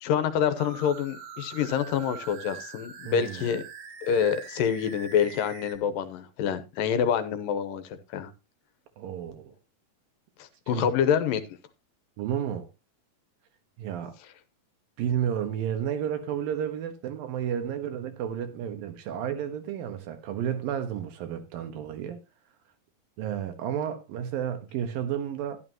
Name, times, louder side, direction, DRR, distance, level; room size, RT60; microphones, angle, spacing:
voice 1, 0.0-3.6 4.0-8.3 10.4-11.4, left 8 dB, 80° left, 2.6 m, -27 dB
sound 1, 0.6-5.8, right 6 dB, 55° right, 2.8 m, -43 dB
voice 2, 3.1-3.6 9.0-9.5 10.7-10.9 12.2-12.7 13.8-14.2 15.0-22.2 23.2-25.6, right 9 dB, 85° right, 3.2 m, -32 dB
12.0 x 11.5 x 2.9 m
omnidirectional pair, 4.0 m